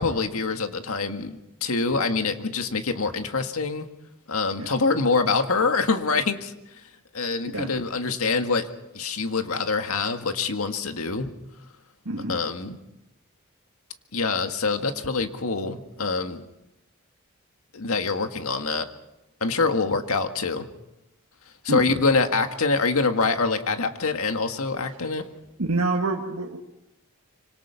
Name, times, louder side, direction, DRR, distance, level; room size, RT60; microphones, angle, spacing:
voice 1, 0.0-3.9 4.3-6.5 7.1-8.7 8.9-11.3 12.3-12.8 14.1-16.4 17.7-18.9 19.4-20.7 21.6-25.2, left 4 dB, 85° left, 6 dB, 1.9 m, -25 dB
voice 2, 12.1-12.4 21.7-21.8 25.6-26.6, right 2 dB, 80° right, 1 dB, 1.8 m, -26 dB
25.5 x 25.5 x 5.9 m, 0.87 s
head